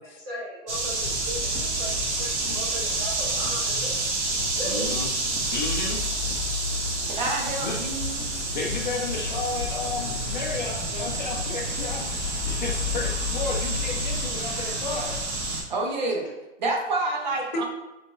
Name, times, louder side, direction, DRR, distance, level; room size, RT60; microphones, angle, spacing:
voice 1, 0.0-4.1 4.6-4.9, equal, 15° right, -10 dB, 0.5 m, -37 dB
sound 1, 0.7-15.6, right 2 dB, 65° right, 1.5 m, -29 dB
sound 2, 1.0-14.2, left 6 dB, 75° left, 0.8 m, -35 dB
voice 2, 4.6-5.1 5.5-6.0 7.6-7.8 8.5-15.2 17.5-17.6, left 3 dB, 40° left, 1 dB, 0.7 m, -32 dB
voice 3, 7.1-8.2 15.7-16.3 16.6-17.6, right 2 dB, 35° right, 0 dB, 0.9 m, -28 dB
5.5 x 3.5 x 2.5 m, 0.96 s
hypercardioid pair, 170°, 37 cm